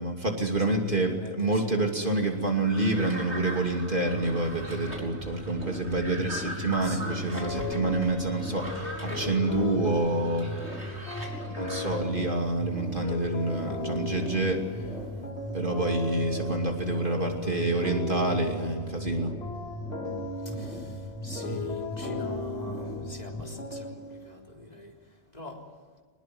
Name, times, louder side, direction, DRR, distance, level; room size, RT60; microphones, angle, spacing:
voice 1, 0.0-10.5 11.5-14.9 15.2-15.3 15.5-19.3, right 2 dB, 40° right, 2 dB, 3.0 m, -28 dB
voice 2, 0.7-2.5 6.8-7.7 20.6-20.8 21.2-24.0 24.3-24.9 25.3-25.6, left 1 dB, 30° left, 0 dB, 4.0 m, -42 dB
sound 1, 2.5-12.0, right 1 dB, 55° right, 5.4 m, -41 dB
sound 2, 4.1-23.4, right 1 dB, ahead, 3.4 m, -38 dB
sound 3, 7.3-24.5, left 4 dB, 50° left, 2.1 m, -38 dB
24.5 x 20.5 x 9.5 m, 1.5 s
omnidirectional pair, 1.4 m